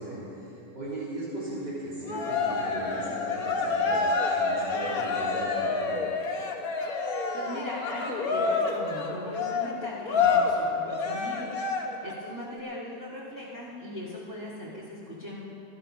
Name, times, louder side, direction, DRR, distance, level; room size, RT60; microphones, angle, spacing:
voice 1, 0.0-6.0, right 1 dB, 70° right, -9 dB, 4.0 m, -38 dB
Cheering, 2.1-12.1, left 4 dB, 55° left, 1.6 m, -28 dB
voice 2, 7.3-11.5 12.0-15.4, left 1 dB, 10° right, -7 dB, 1.6 m, -39 dB
17.5 x 12.5 x 5.5 m, 2.9 s
omnidirectional pair, 1.9 m